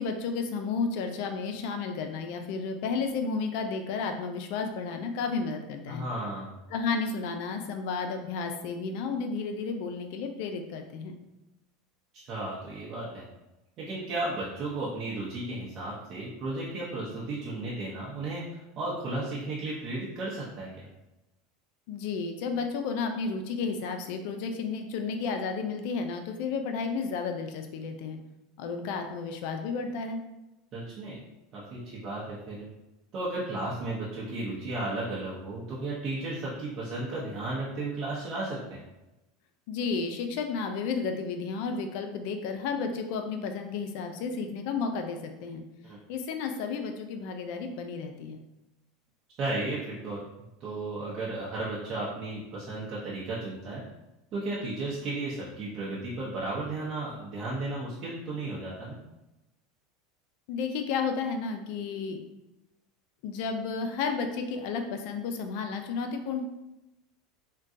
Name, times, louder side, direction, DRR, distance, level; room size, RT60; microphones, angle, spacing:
voice 1, 0.0-6.0 6.7-11.2 21.9-28.2 28.6-30.2 39.7-45.6 46.1-48.4 60.5-62.2 63.2-66.4, left 5 dB, 65° left, 6 dB, 0.4 m, -32 dB
voice 2, 5.9-6.5 12.1-13.2 13.8-20.9 30.7-31.2 31.5-32.7 33.1-38.8 45.8-46.0 49.4-50.2 50.6-53.8 54.3-59.0, right 2 dB, 45° right, -7 dB, 0.7 m, -34 dB
3.6 x 2.2 x 2.6 m, 0.98 s
supercardioid pair, 115°, 0 cm